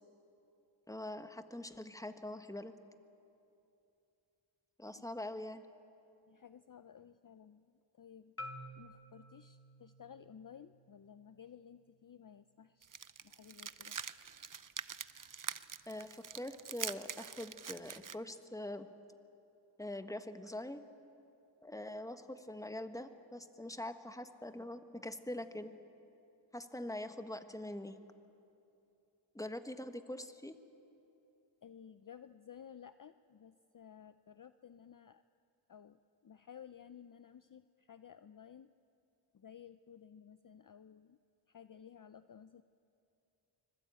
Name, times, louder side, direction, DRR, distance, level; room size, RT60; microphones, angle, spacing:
voice 1, 0.9-2.7 4.8-5.6 15.9-18.9 19.8-20.8 21.6-25.7 26.5-28.0 29.3-30.5, left 1 dB, 5° left, 9 dB, 1.3 m, -44 dB
voice 2, 6.3-8.4 8.7-14.0 31.6-35.2 35.7-38.7 39.3-41.2 41.5-42.6, left 8 dB, 45° left, 12 dB, 0.5 m, -55 dB
Marimba xylophone, 8.4-12.5, left 1 dB, 30° left, 1.5 m, -53 dB
sound 1, 12.8-18.2, right 7 dB, 40° right, 0.7 m, -44 dB
25.0 x 20.5 x 8.9 m, 2.7 s
wide cardioid pair, 70°, 48 cm